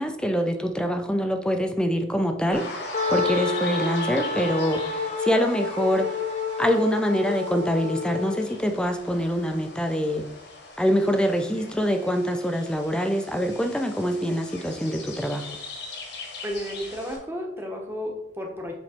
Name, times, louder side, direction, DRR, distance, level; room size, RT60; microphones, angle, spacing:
voice 1, 0.0-6.2 6.6-10.3 10.8-15.5, equal, 5° left, 5 dB, 0.5 m, -25 dB
sound 1, 2.5-17.2, left 2 dB, 60° left, 1.4 m, -40 dB
Wind instrument woodwind instrument, 2.9-8.6, left 4 dB, 40° left, 0.7 m, -29 dB
voice 2, 16.4-18.7, equal, 10° right, 1 dB, 1.1 m, -32 dB
7.2 x 3.2 x 4.4 m, 0.91 s
head